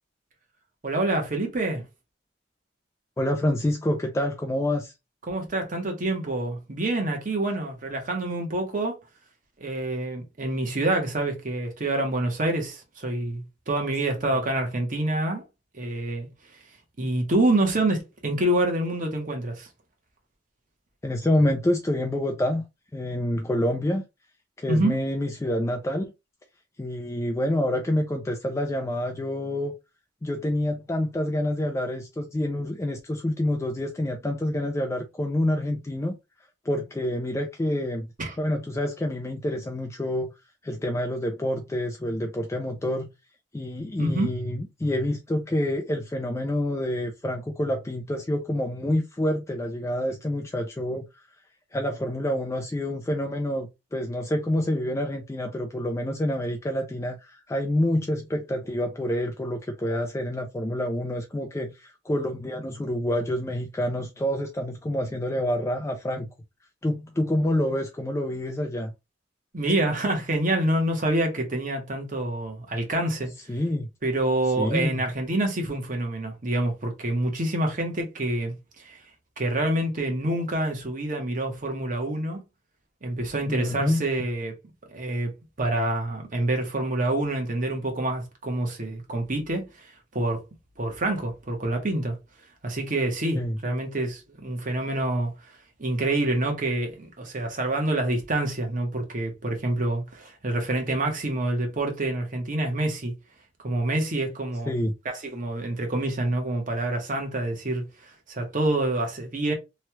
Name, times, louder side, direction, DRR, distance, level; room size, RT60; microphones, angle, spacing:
voice 1, 0.8-1.8 5.3-9.0 9.6-15.4 15.7-16.3 17.0-19.7 24.7-25.0 38.2-38.4 44.0-44.3 69.5-73.3 74.0-79.0 79.4-82.4 83.0-84.5 84.9-85.3 85.6-90.4 90.8-92.2 92.6-95.3 95.8-103.1 103.6-104.7 105.0-107.8 108.3-109.5, right 1 dB, 45° right, 1.0 m, -27 dB
voice 2, 3.2-4.9 14.2-14.3 21.0-22.6 22.9-24.0 24.6-26.1 26.8-29.7 30.2-36.2 36.6-38.1 38.4-40.3 40.6-43.1 43.5-51.3 51.7-66.3 66.8-68.9 73.5-73.9 74.6-75.0 83.5-84.0 93.3-93.6 104.7-104.9, left 1 dB, 15° left, 0.3 m, -27 dB
3.0 x 2.3 x 2.9 m
head